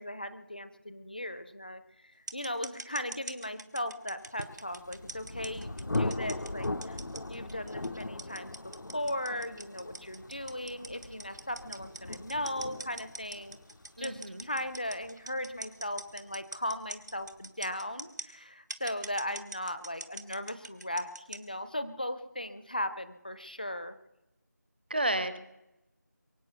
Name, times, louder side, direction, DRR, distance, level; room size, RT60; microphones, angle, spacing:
voice 1, 0.0-1.8 2.2-7.0 7.3-8.5 8.9-13.6 14.0-24.0, left 1 dB, 30° left, 12 dB, 0.6 m, -37 dB
sound 1, 2.3-18.3 18.7-21.4, right 2 dB, 75° right, 1.6 m, -43 dB
Thunder, 4.6-16.1, left 2 dB, 85° left, 0.9 m, -39 dB
voice 2, 14.0-14.5 24.9-25.4, right 1 dB, 35° right, 13 dB, 0.7 m, -31 dB
23.0 x 8.6 x 6.9 m, 0.92 s
figure-of-eight pair, 180°, 10 cm